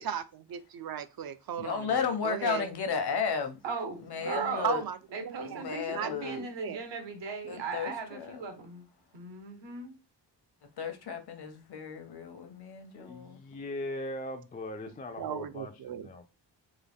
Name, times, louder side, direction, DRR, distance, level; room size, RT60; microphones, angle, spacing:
voice 1, 0.0-1.9 2.2-2.6 4.6-5.6 5.9-6.8 15.2-16.1, right 9 dB, 55° right, 0.5 m, -36 dB
voice 2, 1.6-3.6 4.0-4.8 5.4-6.4 7.4-8.4 10.8-13.4, left 6 dB, 60° left, 0.8 m, -34 dB
voice 3, 3.6-4.7 5.1-8.9 9.1-9.9, right 4 dB, 75° right, 1.1 m, -37 dB
voice 4, 12.9-16.3, left 1 dB, 20° left, 0.3 m, -40 dB
3.6 x 2.1 x 3.5 m
wide cardioid pair, 90°, 43 cm